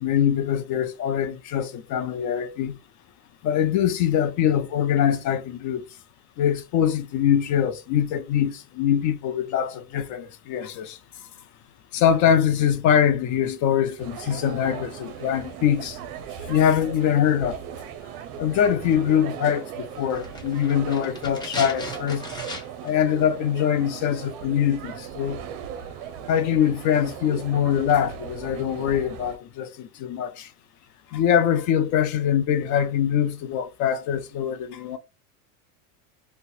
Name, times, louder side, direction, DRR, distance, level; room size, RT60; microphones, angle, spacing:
voice 1, 0.0-2.8 3.4-5.8 6.4-11.0 11.9-16.0 16.5-17.6 18.4-22.2 22.8-25.4 26.3-30.5 31.1-35.0, left 9 dB, 45° left, 0.6 m, -23 dB
sound 1, 14.0-29.4, right 8 dB, 55° right, 0.6 m, -38 dB
sound 2, 20.1-23.0 23.2-23.3, left 1 dB, 10° left, 1.0 m, -36 dB
2.7 x 2.2 x 4.0 m
supercardioid pair, 120°, 43 cm